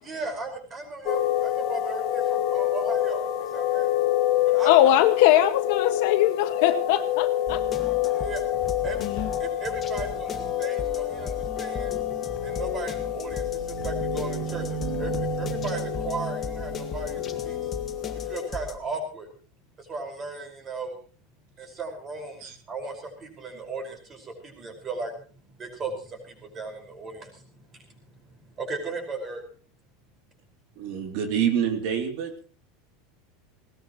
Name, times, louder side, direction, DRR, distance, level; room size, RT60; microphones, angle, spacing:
voice 1, 0.0-3.9 4.5-4.7 8.1-8.4 8.8-9.0 9.4-11.9 12.4-17.7 18.1-19.3 19.8-21.0 21.6-29.4, right 3 dB, 20° right, 4 dB, 5.3 m, -36 dB
sound 1, 1.1-18.5, left 12 dB, 40° left, 1.2 m, -28 dB
voice 2, 4.6-7.6 9.0-9.3, left 12 dB, 55° left, 7 dB, 1.6 m, -21 dB
sound 2, 7.5-18.8, left 4 dB, 20° left, 1.8 m, -38 dB
sound 3, 12.7-18.2, right 13 dB, 70° right, 1.1 m, -36 dB
voice 3, 30.8-32.3, right 8 dB, 45° right, 4 dB, 3.0 m, -26 dB
20.0 x 19.5 x 3.1 m, 0.40 s
supercardioid pair, 175°, 0 cm